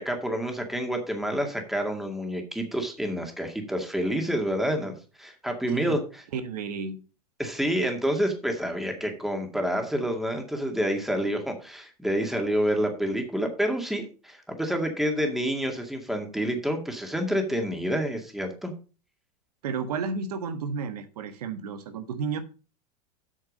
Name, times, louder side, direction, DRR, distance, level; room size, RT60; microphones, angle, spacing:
voice 1, 0.0-4.9 5.2-6.2 7.4-18.7, equal, ahead, 4 dB, 2.1 m, -28 dB
voice 2, 6.3-7.0 19.6-22.4, right 5 dB, 80° right, 9 dB, 1.5 m, -32 dB
8.6 x 6.4 x 5.3 m, 0.35 s
supercardioid pair, 125°, 20 cm